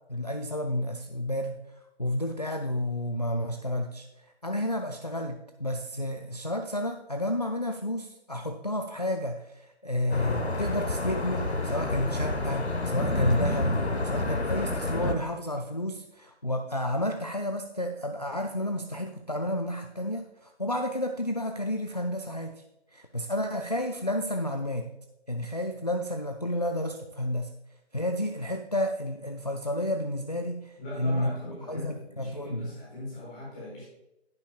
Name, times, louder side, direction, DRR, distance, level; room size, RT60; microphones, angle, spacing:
voice 1, 0.1-1.6 2.0-22.6 22.9-24.9 25.3-27.5 27.9-32.7, left 1 dB, 40° left, 5 dB, 0.4 m, -31 dB
sound 1, 10.1-15.2, left 2 dB, 70° left, 1.2 m, -29 dB
voice 2, 30.8-33.8, left 2 dB, 5° left, -9 dB, 1.3 m, -40 dB
10.5 x 10.0 x 2.4 m, 0.91 s
figure-of-eight pair, 155°, 33 cm